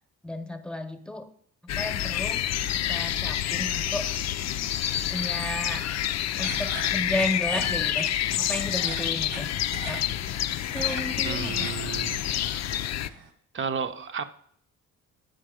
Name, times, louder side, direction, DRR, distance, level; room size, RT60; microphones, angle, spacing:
voice 1, 0.2-1.3 1.8-2.4 2.7-4.1 5.1-5.9 6.4-8.1 8.4-9.5 9.9-10.4 10.7-11.9, left 1 dB, 5° left, 8 dB, 1.0 m, -33 dB
sound 1, 1.7-13.1, left 11 dB, 60° left, 0.5 m, -28 dB
sound 2, 6.3-13.3, right 5 dB, 85° right, 1.6 m, -42 dB
voice 2, 11.2-12.2 13.5-14.2, right 6 dB, 40° right, 9 dB, 0.8 m, -32 dB
8.9 x 5.7 x 5.0 m, 0.63 s
cardioid pair, 90°, 30 cm